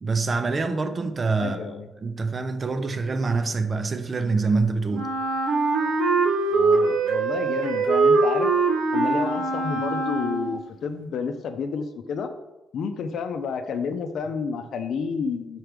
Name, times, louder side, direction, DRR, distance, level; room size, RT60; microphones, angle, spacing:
voice 1, 0.0-1.6 2.0-5.1, right 4 dB, 35° right, 0.6 m, -25 dB
voice 2, 1.4-1.9 6.5-8.5 8.9-12.3 12.7-15.6, left 5 dB, 65° left, 0.6 m, -30 dB
Wind instrument woodwind instrument, 4.9-10.7, right 3 dB, 90° right, 1.1 m, -22 dB
4.7 x 4.5 x 5.1 m
cardioid pair, 90°, 0 cm